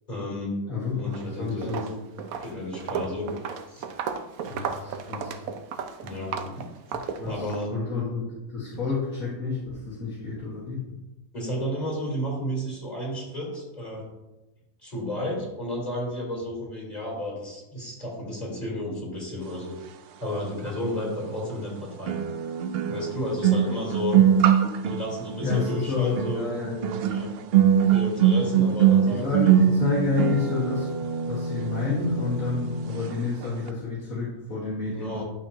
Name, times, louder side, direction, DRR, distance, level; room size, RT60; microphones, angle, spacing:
voice 1, 0.1-0.5 0.9-1.8 2.4-3.3 3.7-3.8 6.0-6.6 7.2-7.7 11.3-14.1 14.8-19.8 20.2-22.2 22.9-24.2 24.8-26.5 27.0-27.3 27.9-29.5 34.9-35.2, left 1 dB, 30° left, -5 dB, 3.5 m, -32 dB
voice 2, 0.7-1.9 4.4-5.4 7.2-10.8 24.1-24.3 25.4-27.0 29.1-30.9 31.3-35.2, left 4 dB, 75° left, -7 dB, 2.2 m, -29 dB
Walk footsteps, 1.0-1.3 1.6-7.7, right 6 dB, 85° right, 1.1 m, -34 dB
sound 1, 20.7-20.8 22.1-33.2 33.4-33.7, right 8 dB, 60° right, 0.6 m, -23 dB
12.0 x 5.8 x 2.9 m, 1.0 s
omnidirectional pair, 1.4 m